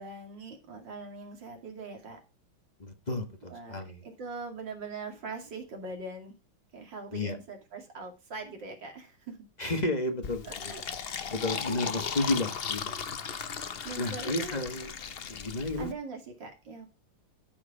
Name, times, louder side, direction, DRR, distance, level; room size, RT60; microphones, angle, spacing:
voice 1, 0.0-2.2 3.5-6.4 6.7-9.4 10.5-10.8 11.2-11.3 13.8-14.6 15.8-16.9, right 3 dB, 65° right, 4 dB, 3.0 m, -42 dB
voice 2, 2.8-4.0 7.1-7.4 9.6-10.7 11.1-13.0 14.0-14.9 15.3-15.9, left 2 dB, 25° left, 6 dB, 1.2 m, -32 dB
Fill (with liquid), 10.2-15.9, left 6 dB, 65° left, 0.5 m, -36 dB
13.0 x 4.9 x 4.9 m, 0.29 s
omnidirectional pair, 2.2 m